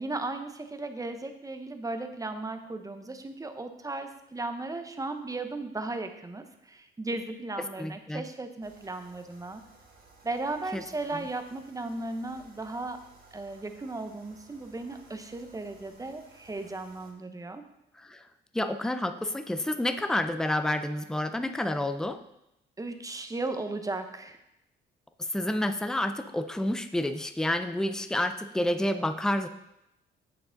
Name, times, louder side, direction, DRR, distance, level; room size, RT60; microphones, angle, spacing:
voice 1, 0.0-9.6 10.2-13.0 13.3-17.6 22.8-24.4, right 2 dB, 15° right, 7 dB, 0.9 m, -36 dB
voice 2, 7.6-8.2 10.7-10.8 11.1-11.3 17.9-18.3 18.5-22.2 25.2-29.5, left 1 dB, 5° left, 9 dB, 0.5 m, -29 dB
sound 1, 8.6-17.1, right 3 dB, 45° right, 1.8 m, -57 dB
8.3 x 6.7 x 3.9 m, 0.85 s
cardioid pair, 90°, 20 cm